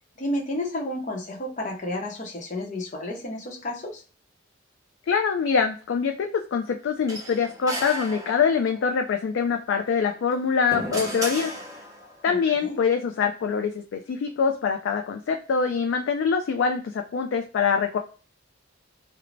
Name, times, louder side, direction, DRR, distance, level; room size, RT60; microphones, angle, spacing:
voice 1, 0.2-4.0 12.3-12.8, left 1 dB, 40° left, 0 dB, 0.7 m, -31 dB
voice 2, 5.1-11.5 12.2-18.0, left 6 dB, 70° left, 4 dB, 0.3 m, -24 dB
sound 1, 7.1-8.8 10.2-12.2, right 1 dB, 15° right, 0.7 m, -34 dB
2.5 x 2.0 x 3.1 m, 0.36 s
head